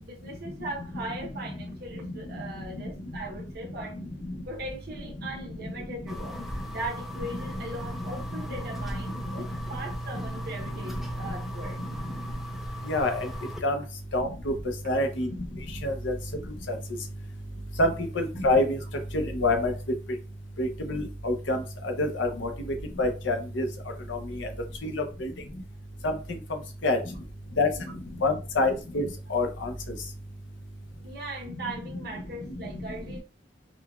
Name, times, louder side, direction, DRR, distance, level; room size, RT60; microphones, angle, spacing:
voice 1, 0.0-4.0 4.5-6.4 6.7-11.8 31.0-33.2, right 1 dB, 60° right, 0.8 m, -39 dB
sound 1, 6.1-13.6, equal, ahead, 0.3 m, -36 dB
voice 2, 12.9-13.3 13.6-13.7 14.1-14.5 14.9-15.3 15.8-16.1 17.8-18.8 19.1-19.7 20.6-21.6 22.0-22.5 23.0-23.7 24.1-24.5 24.8-25.3 26.0-26.1 26.8-27.0 27.6-27.7 28.2-29.0 29.3-29.7, left 2 dB, 80° left, 0.6 m, -26 dB
3.9 x 2.2 x 2.3 m
head